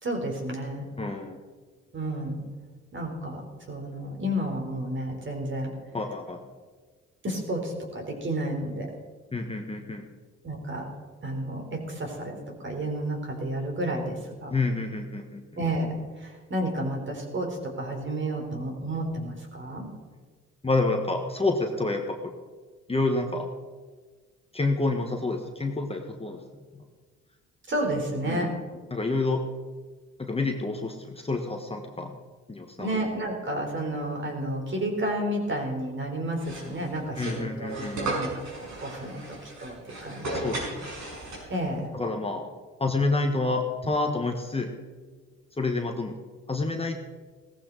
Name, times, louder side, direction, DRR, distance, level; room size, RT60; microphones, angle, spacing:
voice 1, 0.0-0.9 1.9-2.4 2.9-5.7 7.2-8.9 10.4-10.9 11.2-12.4 12.6-14.5 15.6-19.9 27.7-28.5 32.8-40.5 41.5-41.9, right 1 dB, 40° right, 2 dB, 3.9 m, -31 dB
voice 2, 1.0-1.4 5.9-6.4 9.3-10.0 14.5-15.4 20.6-22.3 22.9-23.5 24.5-26.4 28.3-28.5 28.9-29.4 30.2-32.2 32.5-33.0 37.2-38.1 40.3-40.9 41.9-42.5 42.8-44.7 45.6-46.2 46.5-47.0, left 3 dB, 20° left, 3 dB, 1.4 m, -28 dB
sound 1, 36.4-41.7, right 2 dB, 65° right, 5.7 m, -35 dB
17.0 x 14.5 x 4.1 m, 1.4 s
cardioid pair, 90°, 30 cm